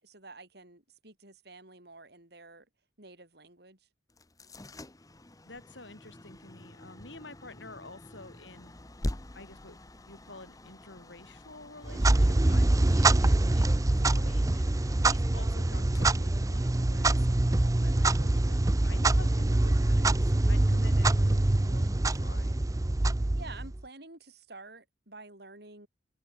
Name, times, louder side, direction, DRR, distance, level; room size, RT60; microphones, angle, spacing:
voice 1, 0.0-2.7 3.0-3.9 23.4-25.9, right 3 dB, 60° right, 6.4 m, -49 dB
sound 1, 4.1-17.0, left 1 dB, 20° left, 1.1 m, -45 dB
voice 2, 5.5-8.7 9.3-9.8 10.1-18.6 18.8-22.6, left 2 dB, 80° left, 7.8 m, -50 dB
Clock, 11.8-23.8, right 2 dB, 20° right, 0.5 m, -25 dB
head